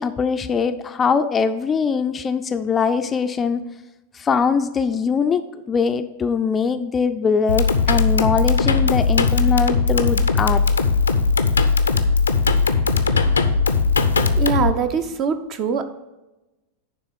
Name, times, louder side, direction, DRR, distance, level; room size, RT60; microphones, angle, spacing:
voice 1, 0.0-3.6 4.1-10.7, left 5 dB, 20° left, 9 dB, 0.4 m, -22 dB
sound 1, 7.5-14.7, left 4 dB, 75° left, 0.6 m, -18 dB
voice 2, 14.4-15.8, right 6 dB, 35° right, 9 dB, 0.7 m, -23 dB
9.7 x 3.7 x 6.7 m, 1.0 s
figure-of-eight pair, 90°, 0 cm